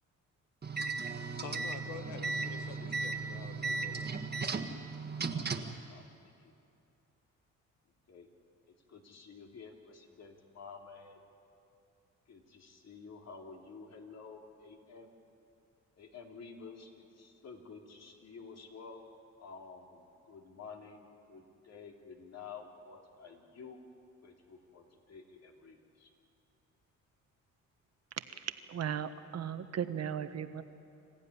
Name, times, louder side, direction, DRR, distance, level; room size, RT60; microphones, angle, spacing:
sound 1, 0.6-5.8, right 4 dB, 35° right, 1.7 m, -36 dB
voice 1, 1.4-4.1, left 6 dB, 85° left, 7 dB, 1.5 m, -47 dB
voice 2, 5.3-6.5 8.1-8.3 8.9-11.2 12.3-15.1 16.0-19.0 19.4-23.8 24.2-26.1, left 5 dB, 60° left, 2 dB, 3.1 m, -51 dB
voice 3, 28.2-30.6, right 8 dB, 55° right, 10 dB, 1.3 m, -37 dB
26.5 x 15.0 x 9.9 m, 2.6 s
cardioid pair, 90°, 30 cm